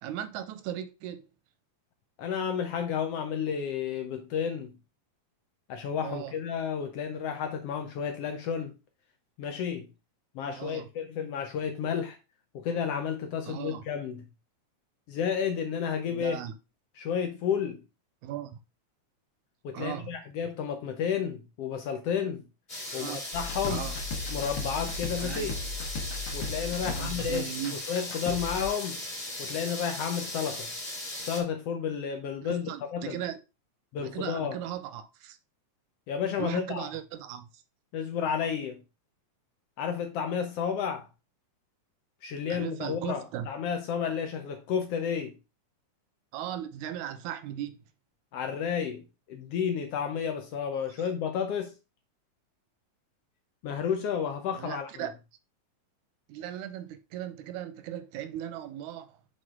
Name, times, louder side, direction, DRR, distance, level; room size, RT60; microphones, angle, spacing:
voice 1, 0.0-1.3 6.0-6.3 10.5-10.9 13.4-13.8 16.1-16.5 18.2-18.6 19.7-20.2 22.9-23.2 23.7-24.0 25.2-25.6 26.8-27.8 32.4-33.4 34.0-35.4 36.4-37.5 42.5-43.5 46.3-47.8 51.0-51.1 54.6-55.1 56.3-59.2, right 11 dB, 90° right, 2.1 m, -37 dB
voice 2, 2.2-4.7 5.7-8.7 9.4-9.9 10.3-12.2 12.5-14.2 15.1-16.4 17.0-17.8 19.6-22.4 22.9-23.9 24.3-25.5 26.3-27.4 27.9-29.0 29.4-30.7 31.2-33.2 33.9-34.6 36.1-36.9 37.9-38.8 39.8-41.0 42.2-45.3 48.3-51.7 53.6-55.1, left 7 dB, 70° left, 1.5 m, -31 dB
sound 1, 22.7-31.4, left 1 dB, 20° left, 2.4 m, -38 dB
Grinder Drum Loop, 23.3-28.6, left 3 dB, 55° left, 1.7 m, -36 dB
6.4 x 4.7 x 3.6 m
omnidirectional pair, 3.4 m